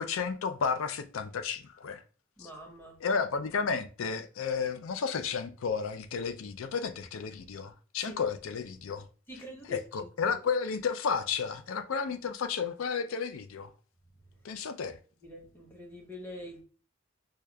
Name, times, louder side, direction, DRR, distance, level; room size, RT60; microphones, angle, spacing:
voice 1, 0.0-2.0 2.4-2.5 3.0-9.1 9.7-13.7 14.4-15.0, left 5 dB, 80° left, 0.4 m, -32 dB
voice 2, 2.4-3.0 8.0-8.1 9.3-10.3 15.2-16.6, equal, 10° left, 0.8 m, -45 dB
6.2 x 2.2 x 2.2 m
head